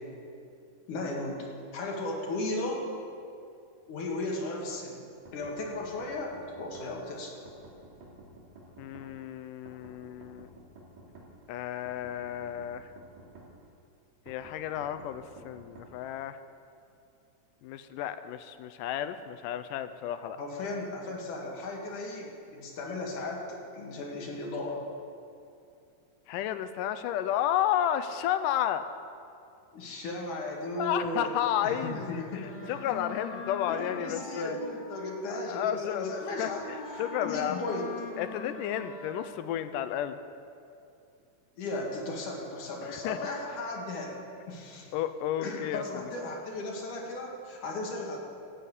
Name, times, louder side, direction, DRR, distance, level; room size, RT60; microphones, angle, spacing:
voice 1, 0.9-1.5 1.7-2.9 3.9-5.0 5.3-7.4 20.3-24.8 29.7-31.3 31.6-32.7 33.7-37.9 41.6-44.2 44.5-44.9 45.4-48.2, left 2 dB, 65° left, -1 dB, 3.4 m, -36 dB
sound 1, 5.3-6.9 7.5-9.1 9.7-11.3 11.9-13.5 14.3-15.9, right 2 dB, 75° right, 4.0 m, -51 dB
voice 2, 8.8-10.5 11.5-12.9 14.3-16.4 17.6-20.4 26.3-28.9 30.8-34.6 35.3-37.6 38.2-40.2 42.8-43.2 44.9-45.8, left 10 dB, 80° left, 11 dB, 2.1 m, -32 dB
Wind instrument woodwind instrument, 32.4-39.6, left 3 dB, 35° left, 2.7 m, -42 dB
13.5 x 9.2 x 8.5 m, 2.5 s
omnidirectional pair, 3.9 m